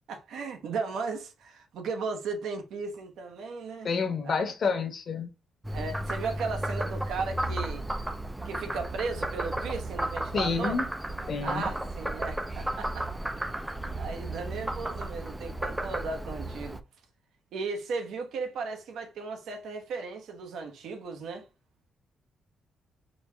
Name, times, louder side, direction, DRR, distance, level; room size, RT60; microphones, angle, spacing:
voice 1, 0.1-3.9 4.2-4.4 5.7-7.8 8.4-10.8 11.4-13.4 14.0-16.8 17.5-21.5, right 4 dB, 80° right, 1.0 m, -36 dB
voice 2, 3.8-5.3 10.3-10.9 11.3-11.7, left 5 dB, 45° left, 1.0 m, -29 dB
Frog, 5.6-16.8, right 1 dB, 5° right, 0.4 m, -34 dB
4.2 x 2.8 x 3.4 m
cardioid pair, 145°, 0 cm